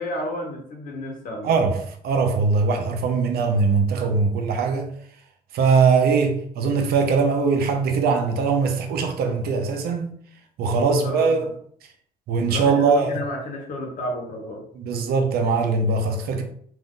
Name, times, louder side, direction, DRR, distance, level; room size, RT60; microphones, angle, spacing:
voice 1, 0.0-1.6 10.9-11.5 12.5-14.6, left 1 dB, 50° left, 1.1 m, -31 dB
voice 2, 1.4-4.9 5.5-10.1 10.6-11.5 11.8-11.9 12.3-13.1 14.7-16.4, right 4 dB, 65° right, 0.7 m, -21 dB
2.7 x 2.5 x 3.7 m
cardioid pair, 110°, 17 cm